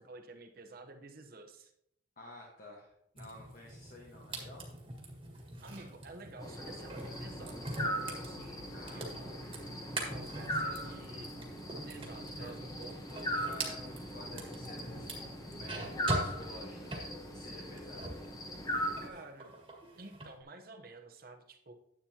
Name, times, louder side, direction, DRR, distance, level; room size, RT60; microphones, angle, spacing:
voice 1, 0.0-1.7 5.6-9.4 10.1-11.3 11.9-13.2 19.0-19.5 19.9-21.7, right 2 dB, 50° right, 5 dB, 1.0 m, -51 dB
voice 2, 2.2-4.7 8.7-9.3 10.6-11.2 12.3-12.5 13.1-15.3 15.5-18.1, left 1 dB, 45° left, -2 dB, 1.4 m, -52 dB
sound 1, 3.2-18.3 18.6-20.3, right 1 dB, 30° right, 1.7 m, -43 dB
sound 2, 6.4-19.1, equal, 20° left, 1.0 m, -40 dB
9.8 x 8.6 x 2.9 m, 0.75 s
head